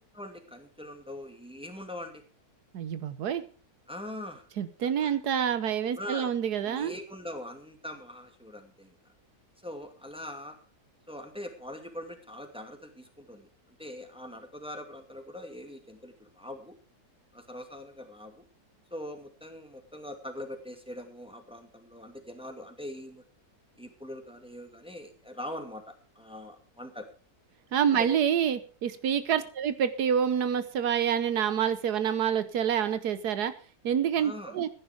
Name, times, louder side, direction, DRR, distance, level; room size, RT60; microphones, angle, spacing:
voice 1, 0.1-2.2 3.9-4.4 5.0-5.1 5.9-6.3 6.6-9.0 9.6-10.6 11.1-13.5 13.8-16.7 17.3-18.4 18.9-23.2 23.8-27.1 27.9-28.2 34.2-34.6, left 1 dB, 5° right, 5 dB, 2.2 m, -42 dB
voice 2, 2.7-3.4 4.6-6.9 27.7-33.5 33.8-34.7, right 8 dB, 80° right, 12 dB, 1.5 m, -27 dB
16.0 x 10.0 x 5.0 m, 0.38 s
omnidirectional pair, 1.7 m